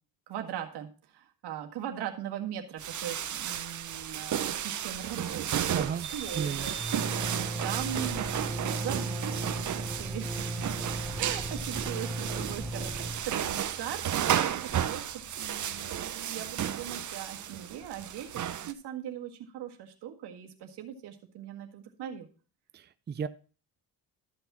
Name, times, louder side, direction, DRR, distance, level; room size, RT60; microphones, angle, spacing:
voice 1, 0.3-5.5 5.7-6.8 7.0-10.7 11.2-22.3, right 10 dB, 90° right, 3 dB, 1.8 m, -40 dB
sound 1, 2.8-18.7, right 10 dB, 50° right, 0.8 m, -33 dB
sound 2, 3.7-4.2 4.5-4.6 4.9-15.5, right 1 dB, ahead, 2.1 m, -38 dB
voice 2, 5.7-6.1 6.3-6.7 22.7-23.3, right 6 dB, 25° right, 12 dB, 0.5 m, -34 dB
13.0 x 6.0 x 4.2 m, 0.36 s
cardioid pair, 120°, 39 cm